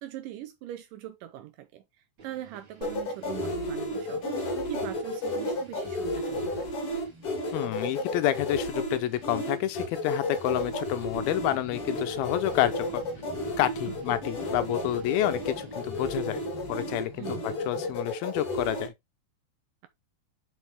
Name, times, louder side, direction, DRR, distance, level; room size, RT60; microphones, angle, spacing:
voice 1, 0.0-1.8 2.2-6.7 13.9-14.2 17.2-17.5, right 13 dB, 75° right, 2.0 m, -41 dB
sound 1, 2.2-15.9, right 4 dB, 35° right, 2.9 m, -54 dB
sound 2, 2.8-18.9, left 1 dB, 50° left, 2.0 m, -32 dB
voice 2, 7.5-13.0 13.6-16.4 16.7-18.9, left 13 dB, 80° left, 2.7 m, -29 dB
sound 3, 11.1-18.0, equal, 15° right, 1.0 m, -46 dB
6.2 x 5.1 x 3.5 m
omnidirectional pair, 4.3 m